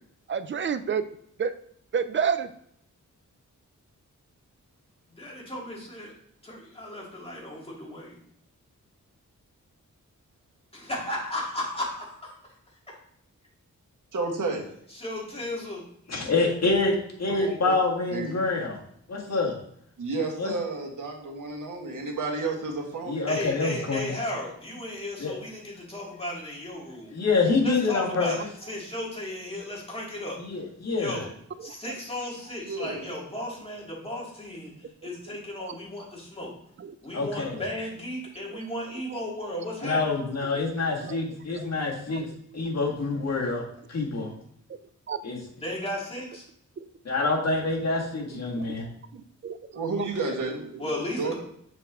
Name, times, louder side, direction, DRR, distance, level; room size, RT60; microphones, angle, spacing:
voice 1, 0.3-1.0 1.4-1.5 1.9-2.5 28.2-28.3 31.6-31.7 35.6-35.8 36.8-37.0 38.5-38.6 39.9-40.1 41.0-41.2 41.5-41.7 42.1-42.3 45.1-45.2 46.8-46.9 48.3-48.7 49.1-49.6 49.9-50.1 50.7-50.9, right 6 dB, 40° right, 12 dB, 0.4 m, -30 dB
voice 2, 5.1-6.1 6.4-8.2 10.7-12.4 14.9-15.8 23.3-27.1 27.6-30.4 31.0-31.3 31.6-34.7 35.0-36.5 37.0-40.0 45.6-46.4 50.8-51.4, left 1 dB, 20° left, -3 dB, 2.0 m, -35 dB
voice 3, 14.1-14.7 17.4-17.7 18.1-18.4 20.0-23.3 32.6-33.2 49.8-50.6 51.2-51.4, right 3 dB, 80° right, 0 dB, 1.5 m, -31 dB
voice 4, 16.1-18.8 19.1-19.5 20.4-20.5 23.1-24.0 25.2-25.3 27.1-28.3 30.4-31.2 37.1-37.5 39.8-42.2 42.5-43.6 43.9-44.3 45.2-45.4 47.1-48.9, left 3 dB, 55° left, -2 dB, 1.8 m, -26 dB
6.7 x 5.0 x 3.5 m, 0.69 s
wide cardioid pair, 120°, 31 cm